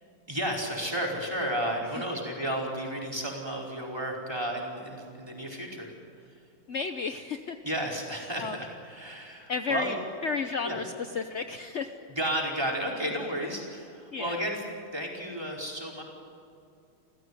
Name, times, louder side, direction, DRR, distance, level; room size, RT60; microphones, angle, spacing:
voice 1, 0.3-5.9 7.6-9.9 10.6-10.8 12.2-14.6 14.9-16.0, right 1 dB, 10° right, -2 dB, 4.8 m, -32 dB
voice 2, 6.7-7.6 8.4-8.6 9.5-10.0 10.2-12.0 14.1-14.4, left 4 dB, 60° left, 7 dB, 0.7 m, -32 dB
29.5 x 15.5 x 9.7 m, 2.6 s
omnidirectional pair, 2.4 m